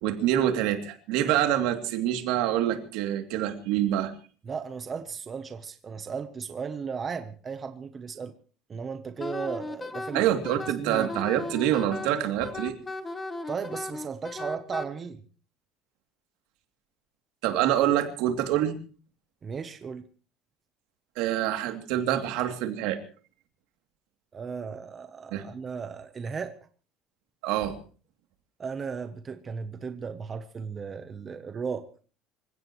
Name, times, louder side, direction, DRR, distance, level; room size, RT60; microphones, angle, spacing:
voice 1, 0.0-4.1 10.1-12.8 17.4-18.8 21.2-23.0 25.3-25.4 27.4-27.8, right 11 dB, 70° right, 6 dB, 2.7 m, -26 dB
voice 2, 4.5-8.3 8.7-10.2 10.8-11.1 13.5-15.2 19.4-20.0 24.3-26.5 28.6-31.9, right 6 dB, 20° right, 9 dB, 0.8 m, -35 dB
Wind instrument woodwind instrument, 9.2-14.9, left 2 dB, 15° left, 1.1 m, -36 dB
26.5 x 16.5 x 3.1 m, 0.40 s
cardioid pair, 175°, 0 cm